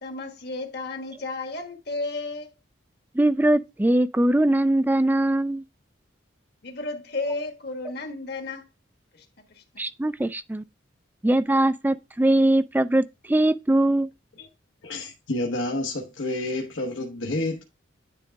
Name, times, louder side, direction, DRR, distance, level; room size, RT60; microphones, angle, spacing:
voice 1, 0.0-2.5 6.6-8.7 9.1-9.8, left 2 dB, 55° left, 1.4 m, -33 dB
voice 2, 3.2-5.6 9.8-10.6 11.2-14.1, right 1 dB, 10° right, 0.3 m, -21 dB
voice 3, 14.8-17.6, left 2 dB, 80° left, 1.1 m, -29 dB
9.9 x 3.6 x 3.4 m
head